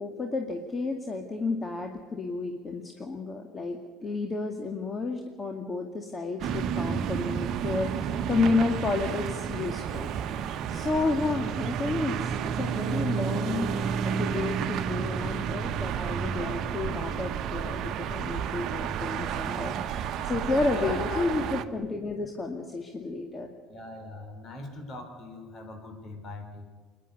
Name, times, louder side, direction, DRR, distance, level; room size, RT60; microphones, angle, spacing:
voice 1, 0.0-10.1 10.7-13.7 14.0-23.5, left 3 dB, 25° left, 3 dB, 2.2 m, -31 dB
sound 1, 6.4-21.6, right 7 dB, 55° right, 1.1 m, -31 dB
voice 2, 20.7-21.3 23.7-26.7, left 2 dB, 45° left, 5 dB, 4.6 m, -41 dB
27.5 x 10.5 x 9.7 m, 1.5 s
hypercardioid pair, 60°, 0 cm